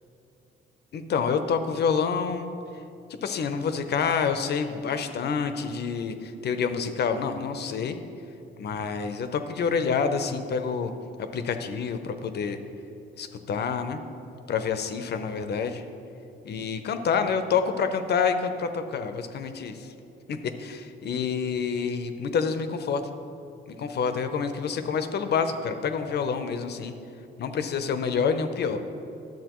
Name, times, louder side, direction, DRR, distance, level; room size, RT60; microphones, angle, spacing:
voice 1, 0.9-2.5 3.1-8.0 8.6-10.9 11.2-12.6 13.2-14.0 14.5-15.8 16.4-19.9 20.3-23.1 23.7-26.9 27.4-28.8, left 6 dB, 55° left, 8 dB, 0.6 m, -28 dB
11.5 x 7.4 x 3.0 m, 2.9 s
cardioid pair, 90°, 20 cm